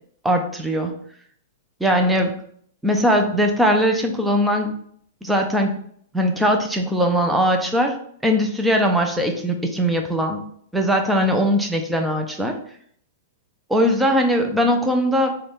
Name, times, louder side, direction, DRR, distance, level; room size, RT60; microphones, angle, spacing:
voice 1, 0.2-0.9 1.8-2.4 2.8-4.7 5.2-5.8 6.1-7.9 8.2-10.4 10.7-12.6 13.7-15.3, equal, 5° right, 3 dB, 0.4 m, -20 dB
3.9 x 2.3 x 3.4 m, 0.62 s
hypercardioid pair, 150°, 0 cm